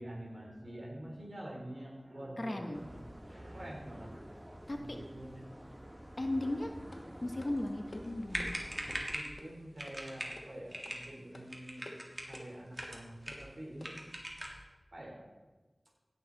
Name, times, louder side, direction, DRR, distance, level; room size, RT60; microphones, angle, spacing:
voice 1, 0.0-3.0 3.3-4.5 4.7-6.2 8.8-11.9 12.2-14.0 14.9-15.3, right 1 dB, 80° right, -3 dB, 3.7 m, -47 dB
voice 2, 2.4-2.8 4.7-5.0 6.2-6.7 7.2-8.6, left 1 dB, 55° left, 3 dB, 1.0 m, -36 dB
sound 1, 2.7-9.2, equal, 15° right, 1.1 m, -49 dB
sound 2, 6.4-14.1, left 1 dB, 70° left, 1.3 m, -54 dB
sound 3, 8.0-8.1 8.3-9.4 9.8-10.4 10.7-11.1 11.5-12.4 12.7-13.5 13.8-14.6, right 1 dB, 35° right, 2.1 m, -41 dB
16.5 x 6.8 x 4.1 m, 1.2 s
wide cardioid pair, 40°, 0 cm